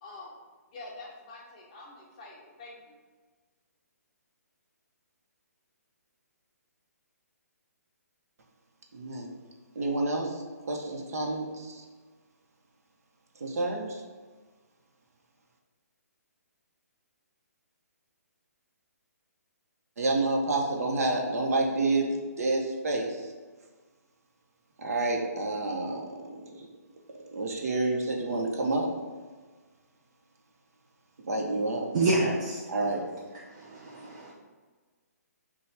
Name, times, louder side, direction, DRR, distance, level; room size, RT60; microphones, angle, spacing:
voice 1, 0.0-0.3 0.7-2.9, left 2 dB, 25° left, -2 dB, 0.6 m, -46 dB
voice 2, 8.9-9.3 9.7-10.4 10.7-11.8 13.4-14.0 20.0-23.3 24.8-26.6 27.3-28.9 31.2-31.9 32.7-33.0, right 2 dB, 65° right, 0 dB, 0.8 m, -29 dB
voice 3, 31.9-32.6 33.5-34.3, right 2 dB, 25° right, -3 dB, 0.4 m, -28 dB
5.6 x 2.3 x 3.3 m, 1.4 s
hypercardioid pair, 170°, 9 cm